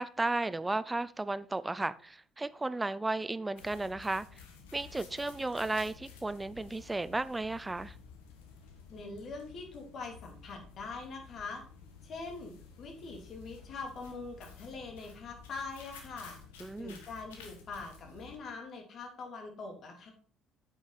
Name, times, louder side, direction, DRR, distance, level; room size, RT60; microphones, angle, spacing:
voice 1, 0.0-4.3 4.7-7.9 16.6-17.0, right 2 dB, 15° right, 0.5 m, -34 dB
sound 1, 3.6-18.4, left 6 dB, 80° left, 1.4 m, -53 dB
voice 2, 8.9-11.6 12.0-12.5 12.8-16.4 16.8-20.1, left 3 dB, 50° left, 2.8 m, -43 dB
8.6 x 6.2 x 4.2 m
hypercardioid pair, 55°, 0 cm